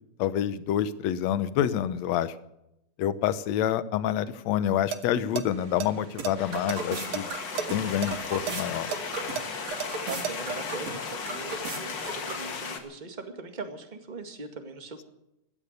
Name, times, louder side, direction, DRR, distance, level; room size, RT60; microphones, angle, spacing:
voice 1, 0.2-2.3 3.0-7.3 7.7-8.9, left 10 dB, 70° left, 14 dB, 2.0 m, -27 dB
sound 1, 4.7-5.1 5.4-5.5 5.8-7.2 7.6-7.7 8.0-10.3, right 11 dB, 85° right, 2.5 m, -32 dB
sound 2, 5.5-12.7, right 3 dB, 60° right, 4.0 m, -38 dB
sound 3, 6.4-12.8, left 5 dB, 45° left, 2.0 m, -36 dB
voice 2, 10.1-15.0, right 3 dB, 20° right, 6 dB, 1.6 m, -40 dB
16.5 x 12.5 x 6.7 m, 0.85 s
omnidirectional pair, 3.4 m